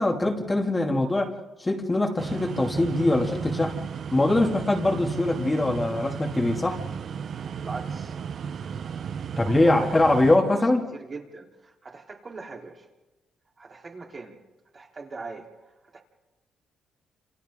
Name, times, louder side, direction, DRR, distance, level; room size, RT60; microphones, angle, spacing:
voice 1, 0.0-3.8 4.1-6.8 9.4-10.9, left 2 dB, 20° left, 2.6 m, -23 dB
sound 1, 2.2-10.4, right 7 dB, 60° right, 0.8 m, -34 dB
voice 2, 7.6-8.2 9.4-10.7 10.9-12.9 13.6-14.4 14.7-15.5 15.9-16.0, right 4 dB, 35° right, 3.5 m, -40 dB
29.0 x 28.0 x 3.8 m
cardioid pair, 90°, 0 cm